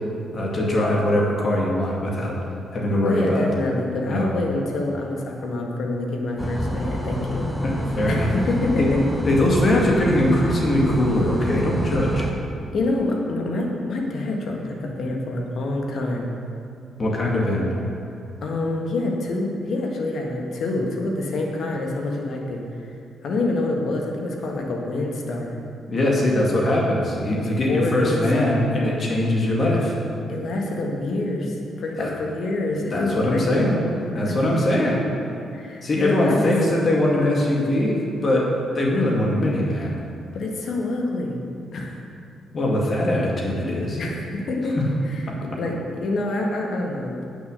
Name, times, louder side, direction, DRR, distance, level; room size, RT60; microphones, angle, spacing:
voice 1, 0.3-2.3 2.7-3.5 4.1-4.3 7.6-8.3 8.8-8.9 9.2-12.3 17.0-17.7 25.9-30.0 32.0-32.1 32.9-33.8 34.1-35.0 35.8-38.5 38.7-39.9 42.5-44.0 44.8-44.9 45.3-45.4, left 1 dB, 50° left, -2 dB, 2.2 m, -21 dB
voice 2, 3.0-7.5 8.1-9.0 12.7-16.3 18.4-22.8 23.2-25.6 27.3-28.7 30.3-34.0 34.3-34.4 35.5-36.5 40.3-41.4 41.7-42.0 44.0-44.8 45.0-45.3 45.6-47.2, left 2 dB, 65° left, 0 dB, 1.6 m, -26 dB
sound 1, 6.4-12.3, equal, ahead, 1.3 m, -27 dB
8.9 x 7.0 x 6.5 m, 2.5 s
supercardioid pair, 50°, 0 cm